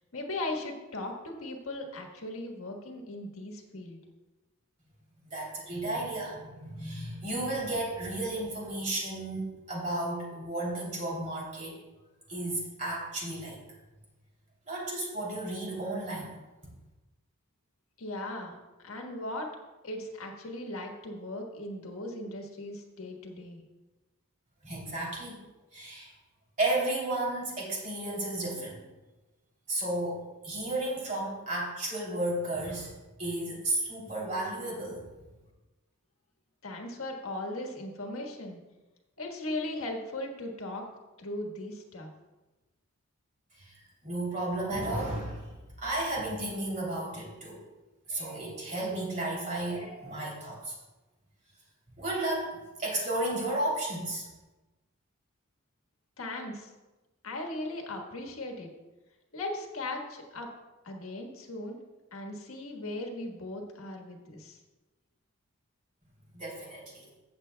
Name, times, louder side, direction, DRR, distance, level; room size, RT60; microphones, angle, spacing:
voice 1, 0.1-4.0 18.0-19.5 19.8-23.6 36.6-38.6 39.2-40.8 41.2-42.1 56.2-56.7 57.2-58.7 59.3-60.5 60.8-61.8 62.1-64.6, left 2 dB, 75° left, 1 dB, 1.5 m, -38 dB
voice 2, 5.2-11.7 12.3-13.6 14.6-16.3 24.6-25.4 25.7-26.1 26.6-28.8 29.7-32.9 33.2-35.0 43.6-45.5 45.8-47.6 48.1-50.7 52.0-54.2 66.3-67.0, right 1 dB, 35° right, -3 dB, 3.1 m, -33 dB
14.5 x 7.8 x 2.3 m, 1.1 s
head